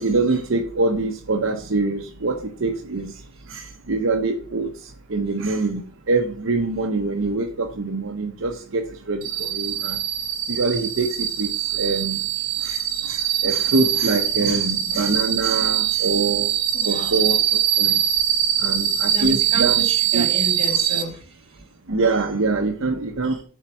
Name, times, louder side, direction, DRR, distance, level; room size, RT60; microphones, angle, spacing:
voice 1, 0.0-3.1 3.5-4.7 5.1-8.8 9.1-10.0 10.5-12.2 12.6-12.8 13.1-16.5 16.9-18.0 18.6-19.8 20.1-20.3 21.9-23.4, right 3 dB, 65° right, 3 dB, 0.8 m, -24 dB
sound 1, 9.2-21.0, right 11 dB, 50° right, 2.2 m, -22 dB
voice 2, 16.7-17.2 19.1-21.6, right 1 dB, 30° right, -2 dB, 2.7 m, -31 dB
7.3 x 4.4 x 6.0 m, 0.43 s
head